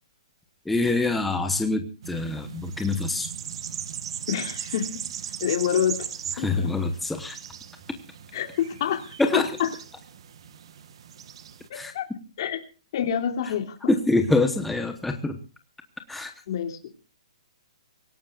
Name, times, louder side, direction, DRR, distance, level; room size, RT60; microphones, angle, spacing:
voice 1, 0.6-3.3 6.3-7.4 9.2-9.6 11.7-11.9 13.4-13.5 13.9-15.4 16.1-16.3, left 2 dB, 5° left, 5 dB, 1.0 m, -25 dB
sound 1, 2.0-11.7, right 9 dB, 50° right, 1.3 m, -38 dB
voice 2, 4.3-5.0 5.4-6.1 6.4-6.7 8.3-9.1 9.3-9.4 11.7-12.1 12.4-12.6 12.9-13.7 16.5-16.8, left 9 dB, 40° left, 3 dB, 2.8 m, -27 dB
25.0 x 17.5 x 2.4 m, 0.34 s
hypercardioid pair, 165°, 4 cm